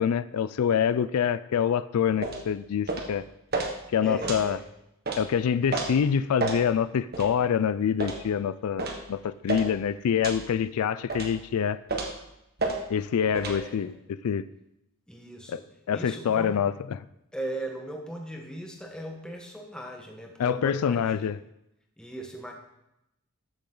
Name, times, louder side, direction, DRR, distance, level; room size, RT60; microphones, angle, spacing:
voice 1, 0.0-3.2 3.9-4.6 5.1-11.8 12.9-14.4 15.5-15.6 15.9-17.0 20.4-21.4, left 7 dB, 85° left, 15 dB, 0.4 m, -26 dB
sound 1, 2.2-2.4 2.9-3.1 3.5-3.7 4.2-4.4 5.1-5.2 5.7-5.9 6.4-6.6 7.1-7.3 8.0-8.2 8.8-9.0 9.5-9.7 10.2-10.4 11.1-11.3 11.9-12.2 12.6-12.8 13.3-13.6, right 3 dB, 45° right, 1.5 m, -30 dB
voice 2, 4.0-4.6 13.3-13.9 15.1-15.7 15.9-16.6 17.3-21.3 22.0-22.5, right 1 dB, 5° left, 1 dB, 1.3 m, -38 dB
13.0 x 7.1 x 3.9 m, 0.85 s
head